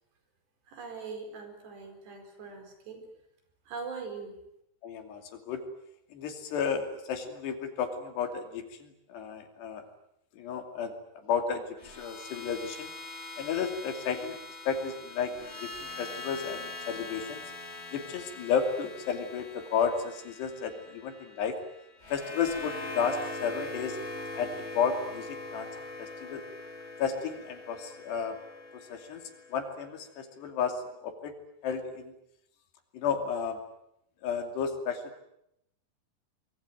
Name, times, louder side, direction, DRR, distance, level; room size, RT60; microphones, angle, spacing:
voice 1, 0.7-3.0 3.7-4.3, right 4 dB, 85° right, 6 dB, 6.9 m, -41 dB
voice 2, 4.8-5.6 6.1-9.8 10.3-10.9 11.2-12.9 13.4-14.4 14.7-17.4 17.9-21.5 22.1-24.0 24.4-26.4 27.0-28.4 28.7-29.2 29.5-31.3 31.6-32.1 32.9-33.6 34.2-35.2, left 6 dB, 85° left, 6 dB, 4.9 m, -33 dB
sound 1, 11.8-29.9, left 2 dB, 20° left, 2.1 m, -42 dB
24.5 x 22.0 x 9.4 m, 0.81 s
omnidirectional pair, 4.7 m